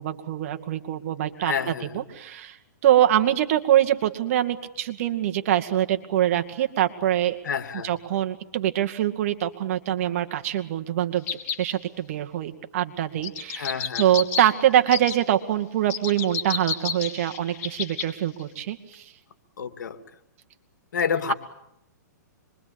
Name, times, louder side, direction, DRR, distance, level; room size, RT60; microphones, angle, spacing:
voice 1, 0.0-2.6 2.8-7.4 7.8-11.3 11.6-13.7 14.0-19.1, right 11 dB, 50° right, 7 dB, 2.3 m, -24 dB
voice 2, 1.4-2.0 7.4-7.9 13.6-14.0 19.6-20.0 20.9-21.3, left 7 dB, 80° left, 9 dB, 2.5 m, -28 dB
sound 1, 11.3-11.6 13.2-14.4 14.9-15.2 15.9-18.1 18.4-18.5, left 7 dB, 45° left, 3.8 m, -30 dB
26.0 x 23.0 x 8.9 m, 0.80 s
hypercardioid pair, 150°, 10 cm